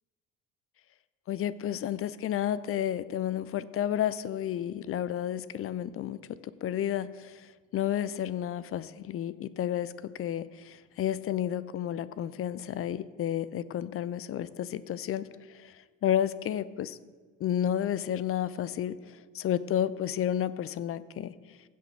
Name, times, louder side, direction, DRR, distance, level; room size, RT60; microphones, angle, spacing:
voice 1, 1.3-17.0 17.4-21.3, left 10 dB, 35° left, 16 dB, 0.5 m, -31 dB
16.0 x 5.9 x 4.6 m, 1.4 s
figure-of-eight pair, 60°, 43 cm